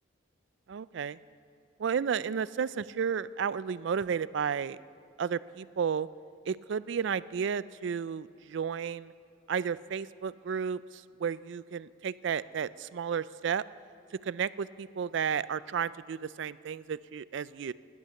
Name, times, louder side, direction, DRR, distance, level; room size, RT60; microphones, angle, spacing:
voice 1, 0.7-1.2 1.8-4.8 5.2-6.1 6.5-9.1 9.5-13.6 14.3-17.7, right 7 dB, 60° right, 18 dB, 0.3 m, -32 dB
16.5 x 11.0 x 7.0 m, 2.4 s
head